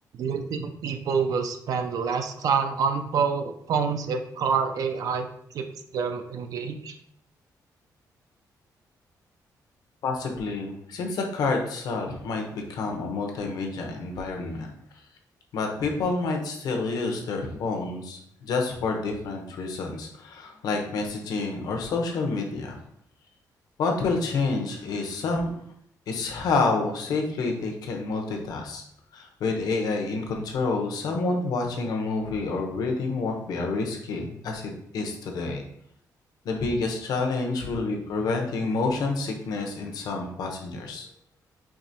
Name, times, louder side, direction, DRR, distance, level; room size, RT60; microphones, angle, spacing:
voice 1, 0.2-5.3 5.5-5.6 5.9-7.0, right 6 dB, 60° right, 6 dB, 0.4 m, -27 dB
voice 2, 10.0-14.7 15.5-22.8 23.8-25.6 26.1-28.8 29.1-35.6 36.4-41.1, left 3 dB, 70° left, 2 dB, 0.8 m, -28 dB
4.7 x 2.9 x 2.7 m, 0.69 s
cardioid pair, 170°, 7 cm